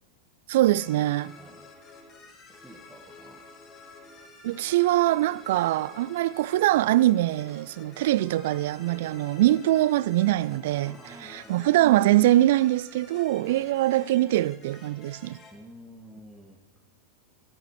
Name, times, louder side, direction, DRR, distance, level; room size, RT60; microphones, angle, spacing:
voice 1, 0.5-1.4 4.4-10.9 11.3-15.4, right 15 dB, 55° right, 0.3 m, -23 dB
sound 1, 0.6-15.5, left 3 dB, 30° left, 2.4 m, -50 dB
voice 2, 1.3-1.7 2.5-3.5 10.9-11.7 13.4-13.8 15.5-16.6, equal, 5° right, 1.8 m, -50 dB
12.5 x 8.8 x 8.2 m
figure-of-eight pair, 90°, 0 cm